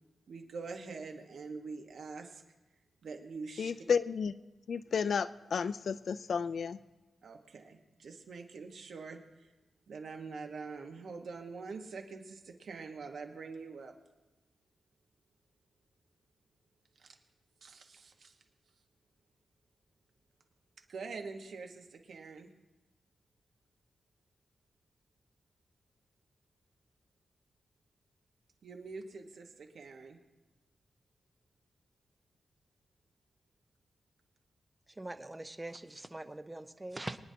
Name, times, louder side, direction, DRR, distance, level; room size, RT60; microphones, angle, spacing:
voice 1, 0.3-2.4 3.0-3.7 7.2-9.5 9.9-13.9 17.0-17.1 17.6-18.4 20.9-22.5 28.6-30.2, right 4 dB, 70° right, 4 dB, 1.3 m, -45 dB
voice 2, 3.6-4.3 4.7-6.8, left 6 dB, 65° left, 15 dB, 0.3 m, -32 dB
voice 3, 34.9-37.2, right 2 dB, 15° right, 10 dB, 0.6 m, -43 dB
23.5 x 10.0 x 2.8 m, 1.1 s
wide cardioid pair, 130°, 0 cm